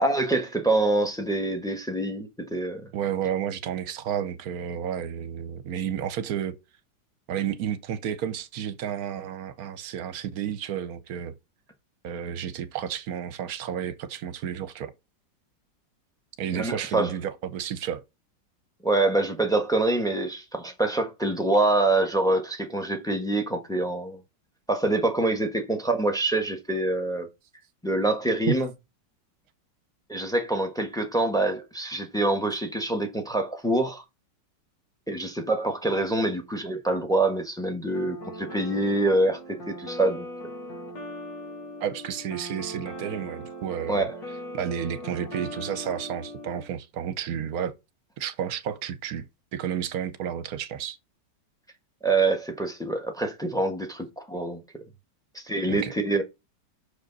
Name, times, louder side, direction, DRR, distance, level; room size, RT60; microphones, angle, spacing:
voice 1, 0.0-2.9 16.5-17.1 18.8-24.2 24.7-27.3 27.8-28.7 30.1-34.0 35.1-40.3 43.9-44.2 52.0-54.6 55.3-56.2, right 2 dB, ahead, 1.1 m, -25 dB
voice 2, 2.9-6.6 7.3-11.3 12.0-14.9 16.4-18.0 28.5-28.6 41.8-44.1 44.5-47.7 48.2-49.3 49.5-51.0 55.7-55.9, right 9 dB, 65° right, 1.1 m, -31 dB
sound 1, 37.9-46.7, equal, 85° left, 2.8 m, -39 dB
6.4 x 5.1 x 3.9 m
omnidirectional pair, 1.9 m